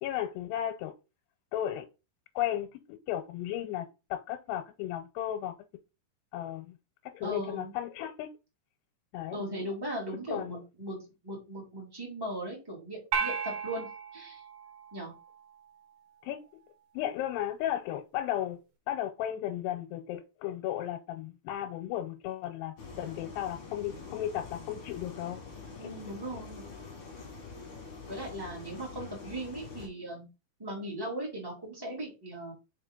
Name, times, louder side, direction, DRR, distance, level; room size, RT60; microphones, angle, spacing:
voice 1, 0.0-0.9 1.5-1.9 2.4-2.7 3.1-5.5 6.3-6.8 7.1-8.3 9.1-9.4 10.3-10.5 16.2-16.4 16.9-18.6 18.9-25.4 25.8-25.9 26.3-26.4, left 12 dB, 90° left, 2.7 m, -34 dB
voice 2, 7.2-7.7 9.3-14.4 14.9-15.1 25.8-26.6 28.1-30.3 30.6-32.5, right 1 dB, 10° right, 1.2 m, -38 dB
sound 1, 13.1-15.6, right 6 dB, 75° right, 2.6 m, -35 dB
sound 2, 22.8-29.9, left 4 dB, 50° left, 1.8 m, -45 dB
5.2 x 5.0 x 3.7 m
omnidirectional pair, 4.8 m